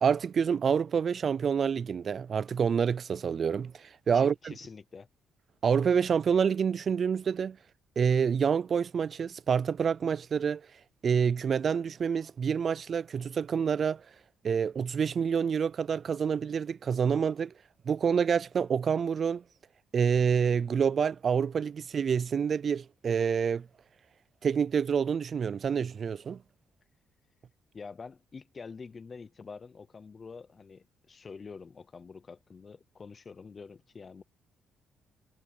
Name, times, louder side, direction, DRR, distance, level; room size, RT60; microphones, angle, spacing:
voice 1, 0.0-4.5 5.6-7.6 8.0-10.6 11.0-14.0 14.4-17.5 17.9-19.4 19.9-23.7 24.4-26.4, right 7 dB, 50° right, 0.3 m, -27 dB
voice 2, 4.1-5.1 27.7-34.2, left 5 dB, 35° left, 0.8 m, -46 dB
cardioid pair, 90°, 0 cm